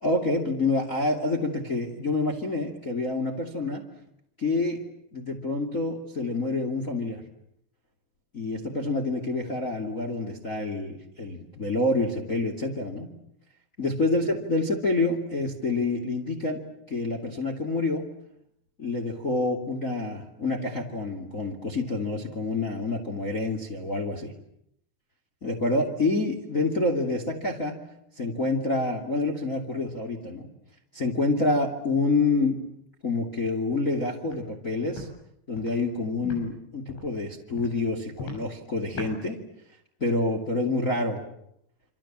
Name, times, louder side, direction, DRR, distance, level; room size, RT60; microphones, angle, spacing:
voice 1, 0.0-3.8 4.4-4.8 5.1-7.2 8.3-13.1 13.8-16.6 16.9-18.1 18.8-24.3 25.4-27.8 28.2-30.5 30.9-32.6 33.0-35.1 35.5-39.4 40.0-41.2, left 2 dB, 25° left, 3 dB, 2.1 m, -27 dB
Walk footsteps, 34.2-34.4 34.9-35.1 35.5-35.7 36.2-36.4 36.9-37.1 37.6-37.7 38.2-38.4 38.9-39.1, left 3 dB, 85° left, 8.4 m, -38 dB
28.0 x 26.5 x 7.5 m, 0.77 s
omnidirectional pair, 5.4 m